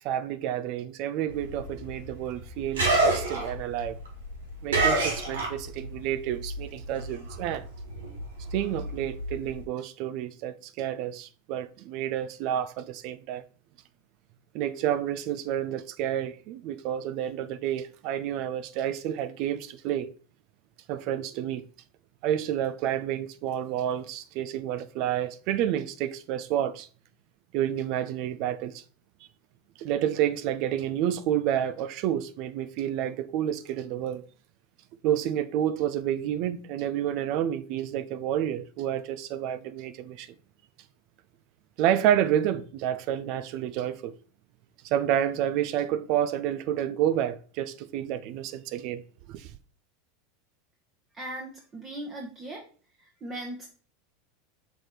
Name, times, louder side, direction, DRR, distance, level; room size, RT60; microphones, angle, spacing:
voice 1, 0.0-4.0 4.6-7.6 8.5-13.4 14.5-20.1 20.9-21.6 22.2-26.9 27.5-28.8 29.8-34.2 35.0-40.3 41.8-44.1 44.8-49.0 49.3-49.5, right 10 dB, 55° right, 0.5 m, -29 dB
sound 1, 1.3-6.0 6.3-9.6, right 2 dB, 85° right, 1.9 m, -28 dB
voice 2, 51.1-52.6 53.0-53.7, right 1 dB, 30° right, 1.4 m, -38 dB
6.2 x 3.3 x 4.5 m
hypercardioid pair, 100°, 0 cm